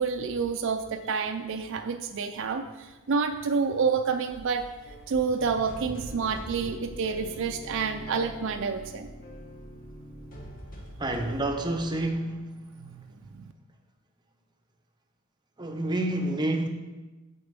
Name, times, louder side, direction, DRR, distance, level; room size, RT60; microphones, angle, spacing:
voice 1, 0.0-4.6 5.1-9.1 12.8-13.0 13.3-13.5, right 5 dB, 55° right, 6 dB, 0.4 m, -29 dB
sound 1, 4.2-12.1, equal, 40° left, 1.1 m, -44 dB
voice 2, 11.0-12.4 15.6-16.7, right 1 dB, 20° right, 4 dB, 0.6 m, -28 dB
6.6 x 4.4 x 6.7 m, 1.2 s
head